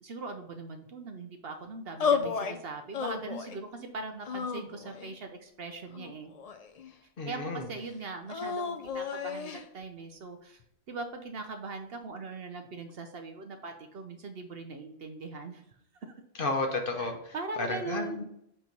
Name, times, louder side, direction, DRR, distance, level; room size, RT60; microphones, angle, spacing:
voice 1, 0.0-6.3 7.3-10.6 10.9-15.6 16.0-16.1 17.0-18.2, right 3 dB, 55° right, 5 dB, 0.8 m, -40 dB
sound 1, 2.0-2.6 2.9-3.6 4.2-5.2 5.9-6.9 8.3-9.6, left 6 dB, 85° left, 0.3 m, -32 dB
voice 2, 7.2-7.7 16.3-18.2, left 3 dB, 50° left, 3 dB, 0.9 m, -32 dB
7.6 x 3.0 x 5.2 m, 0.75 s
omnidirectional pair, 1.3 m